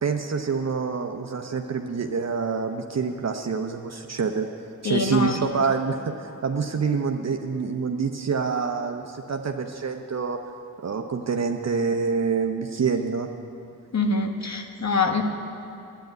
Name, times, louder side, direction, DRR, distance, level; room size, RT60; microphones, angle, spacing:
voice 1, 0.0-4.5 4.8-10.4 10.8-13.3, right 5 dB, 50° right, 4 dB, 0.8 m, -26 dB
voice 2, 4.8-5.4 13.9-15.2, left 4 dB, 50° left, 4 dB, 1.4 m, -24 dB
10.5 x 9.4 x 9.0 m, 2.7 s
cardioid pair, 55°, 35 cm